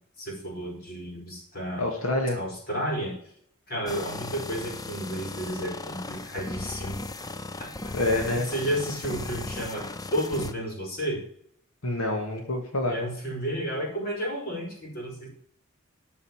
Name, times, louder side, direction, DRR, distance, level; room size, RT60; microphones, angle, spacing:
voice 1, 0.2-1.9 2.3-3.2 3.7-7.0 7.6-7.7 8.1-9.8 10.1-11.2 12.9-15.3, right 1 dB, 45° left, 0 dB, 4.5 m, -32 dB
voice 2, 1.8-2.4 7.9-8.5 11.8-13.0, left 2 dB, 85° left, 1 dB, 2.0 m, -27 dB
sound 1, 3.9-10.5, left 2 dB, 15° left, 0.5 m, -37 dB
13.0 x 5.6 x 7.3 m, 0.64 s
head